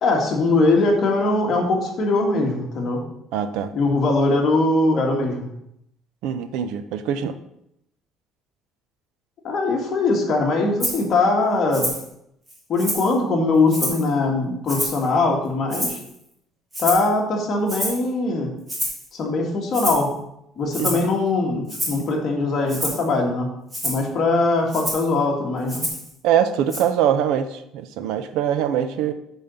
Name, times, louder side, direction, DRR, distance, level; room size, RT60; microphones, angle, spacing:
voice 1, 0.0-3.0 3.7-5.5 9.4-11.9 12.7-16.0 16.8-18.5 19.1-20.1 20.6-23.5 23.8-25.8, left 3 dB, 35° left, 0 dB, 1.8 m, -21 dB
voice 2, 3.3-3.7 6.2-7.4 20.8-21.0 26.2-29.1, right 9 dB, 70° right, 10 dB, 0.7 m, -23 dB
Rattle (instrument), 10.8-11.0 11.7-12.1 12.5-13.1 13.7-14.1 14.7-15.1 15.7-16.1 16.7-17.1 17.7-18.0 18.7-19.1 19.7-20.1 20.7-21.1 21.7-22.0 22.7-23.0 23.7-24.0 24.7-25.1 25.7-26.1 26.7-26.8, equal, 10° right, 2.2 m, -28 dB
8.9 x 4.1 x 6.9 m, 0.78 s
cardioid pair, 175°, 0 cm